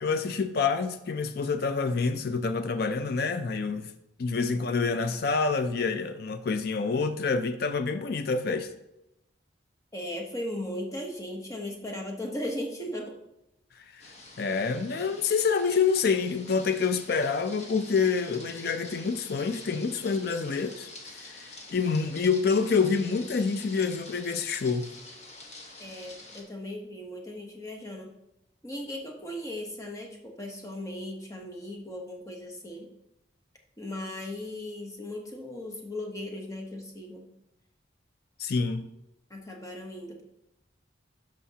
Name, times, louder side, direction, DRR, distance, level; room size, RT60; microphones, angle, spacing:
voice 1, 0.0-3.9 4.2-8.7 13.9-14.1 14.4-24.9 38.4-38.9, left 5 dB, 55° left, 0.4 m, -27 dB
voice 2, 9.9-13.1 25.8-28.1 28.6-32.9 33.8-37.3 39.3-40.2, left 1 dB, 15° left, 1.0 m, -37 dB
sound 1, 14.0-26.4, left 2 dB, 35° left, 1.1 m, -47 dB
11.5 x 5.1 x 2.8 m
head